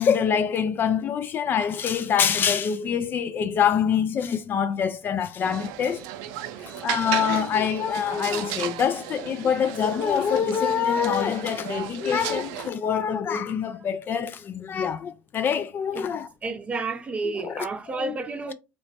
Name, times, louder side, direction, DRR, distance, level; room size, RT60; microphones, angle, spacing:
voice 1, 0.0-6.0 6.6-16.3 17.2-17.7 17.9-18.2, left 7 dB, 40° left, 0.4 m, -25 dB
sound 1, 5.4-12.7, right 12 dB, 75° right, 0.4 m, -34 dB
voice 2, 16.4-18.5, right 3 dB, 25° right, 0.7 m, -30 dB
3.1 x 2.1 x 4.1 m
supercardioid pair, 90°, 5 cm